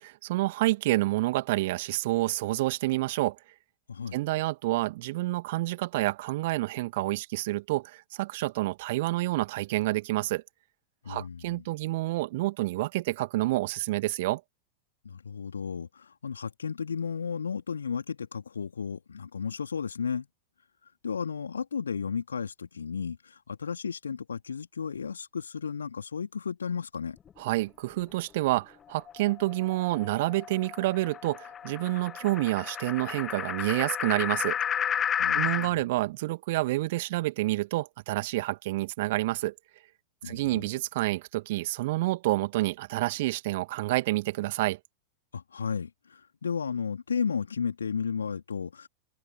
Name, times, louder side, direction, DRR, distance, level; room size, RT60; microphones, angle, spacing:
voice 1, 0.0-3.4 4.1-10.4 11.1-14.4 27.4-34.6 35.3-39.5 40.2-44.8, right 18 dB, 50° right, 2.4 m, -28 dB
voice 2, 11.0-11.6 15.0-20.3 21.0-27.2 35.2-35.8 40.2-40.7 45.3-48.9, left 6 dB, 70° left, 3.7 m, -34 dB
sound 1, 29.0-35.7, left 8 dB, 25° left, 1.3 m, -32 dB
figure-of-eight pair, 90°, 0 cm